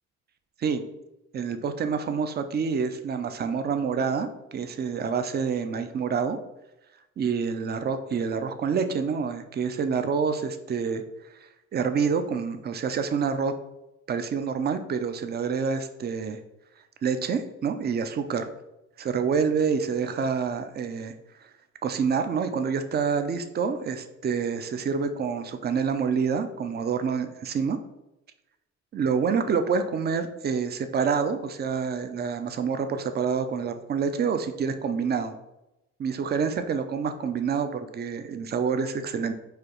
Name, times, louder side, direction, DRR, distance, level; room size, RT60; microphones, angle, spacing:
voice 1, 1.3-6.4 7.2-11.0 11.7-13.5 14.1-16.4 17.0-18.5 19.0-21.1 21.8-27.8 28.9-35.4 36.0-39.3, right 6 dB, 35° right, 9 dB, 0.4 m, -27 dB
4.8 x 2.3 x 3.0 m, 0.93 s
cardioid pair, 90°, 30 cm